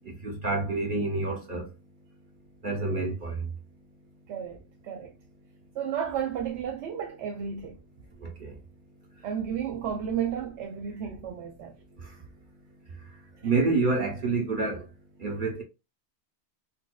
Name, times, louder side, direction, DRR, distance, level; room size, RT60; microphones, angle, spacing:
voice 1, 0.1-1.7 2.6-3.5 8.2-8.5 13.4-14.8 15.2-15.6, right 3 dB, 55° right, 0.8 m, -28 dB
voice 2, 4.3-5.1 5.7-7.8 9.2-11.7, right 8 dB, 85° right, 0.9 m, -32 dB
4.1 x 2.3 x 2.2 m
omnidirectional pair, 1.1 m